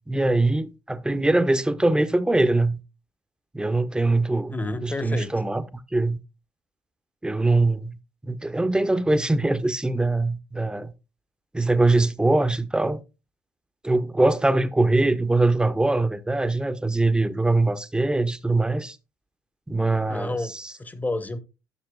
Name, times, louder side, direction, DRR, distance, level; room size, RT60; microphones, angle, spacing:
voice 1, 0.1-2.8 3.5-4.6 4.8-5.6 5.9-6.2 7.2-8.0 8.2-10.9 11.5-13.0 13.8-19.0 19.7-20.7, right 2 dB, 10° right, 0.8 m, -22 dB
voice 2, 4.5-5.3 20.1-20.5 20.8-21.4, left 2 dB, 15° left, 1.0 m, -29 dB
11.0 x 6.5 x 2.3 m
hypercardioid pair, 60°, 9 cm